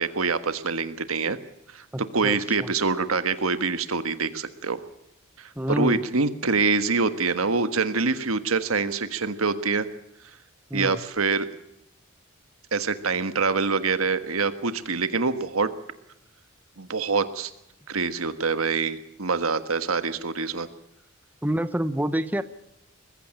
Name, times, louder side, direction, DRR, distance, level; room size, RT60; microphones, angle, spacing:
voice 1, 0.0-1.4 1.7-1.8 2.1-4.8 5.4-9.9 10.7-11.5 12.7-15.7 16.8-17.5 17.9-20.7, right 4 dB, 90° right, 11 dB, 1.5 m, -25 dB
voice 2, 1.9-2.7 5.6-6.0 10.7-11.0 21.4-22.4, right 1 dB, 10° right, 12 dB, 0.8 m, -27 dB
21.5 x 15.0 x 8.7 m, 0.83 s
head